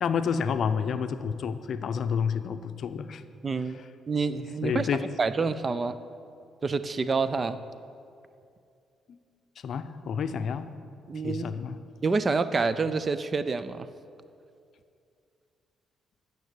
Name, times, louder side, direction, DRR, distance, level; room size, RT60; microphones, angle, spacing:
voice 1, 0.0-3.2 4.6-5.1 9.1-9.2 9.6-10.7 11.2-11.8, left 6 dB, 60° left, 10 dB, 0.5 m, -29 dB
voice 2, 3.4-3.8 4.1-4.9 5.2-6.0 6.6-7.6 11.1-11.5 12.0-13.9, right 4 dB, 35° right, 13 dB, 0.5 m, -27 dB
9.3 x 6.8 x 8.3 m, 2.4 s
cardioid pair, 90°, 0 cm